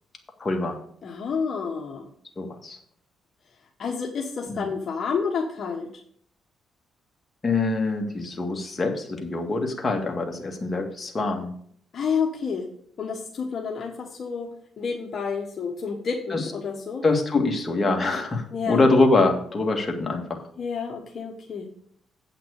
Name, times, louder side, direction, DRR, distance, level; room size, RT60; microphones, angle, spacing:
voice 1, 0.4-0.8 2.4-2.8 4.5-4.7 7.4-11.5 16.3-16.5 17.0-20.4, left 3 dB, 25° left, 2 dB, 1.9 m, -24 dB
voice 2, 1.0-2.1 3.8-5.9 11.9-12.7 13.0-17.0 18.5-18.9 20.6-21.7, left 5 dB, 50° left, 1 dB, 1.2 m, -29 dB
8.3 x 5.9 x 6.5 m, 0.62 s
cardioid pair, 90°, 0 cm